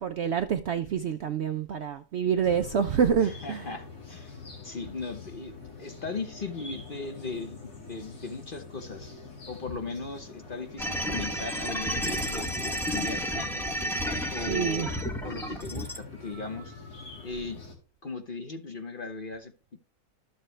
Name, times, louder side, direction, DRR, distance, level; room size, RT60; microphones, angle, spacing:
voice 1, 0.0-3.6 14.5-14.9, right 7 dB, 65° right, 0.7 m, -27 dB
sound 1, 2.4-17.7, left 4 dB, 90° left, 2.9 m, -45 dB
voice 2, 3.2-4.3 4.6-5.5 5.8-9.1 9.5-13.5 14.3-14.9 15.2-16.8 17.2-17.6 18.0-19.5, left 4 dB, 40° left, 1.0 m, -38 dB
sound 2, 10.8-16.0, equal, ahead, 0.7 m, -31 dB
12.5 x 7.0 x 3.3 m
omnidirectional pair, 1.6 m